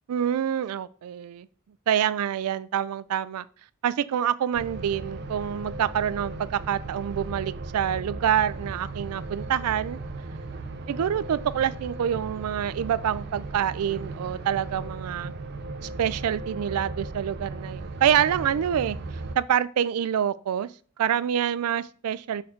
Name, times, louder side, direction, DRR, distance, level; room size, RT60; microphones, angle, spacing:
voice 1, 0.1-1.5 1.9-3.5 3.8-10.0 10.9-15.3 16.0-19.0 19.3-20.7 21.0-22.4, right 9 dB, 80° right, 0.3 m, -26 dB
sound 1, 4.5-19.3, right 3 dB, 50° right, 0.7 m, -37 dB
6.3 x 3.7 x 4.5 m
head